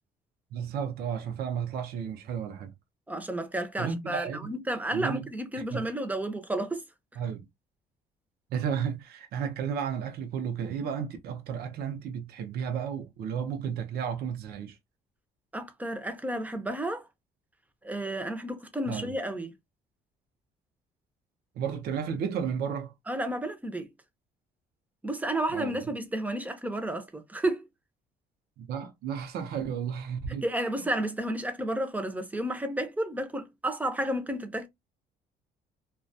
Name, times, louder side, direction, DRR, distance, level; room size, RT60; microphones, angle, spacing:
voice 1, 0.5-2.7 3.8-4.5 4.9-5.3 5.6-5.8 7.2-7.5 8.5-14.8 18.9-19.1 21.6-22.9 25.5-25.8 28.6-30.4 30.8-30.9, right 7 dB, 70° right, 0.6 m, -33 dB
voice 2, 3.1-6.8 15.5-17.0 17.8-19.5 23.1-23.9 25.0-27.7 30.4-34.7, right 1 dB, 10° right, 0.5 m, -31 dB
2.2 x 2.2 x 2.6 m
cardioid pair, 110°, 17 cm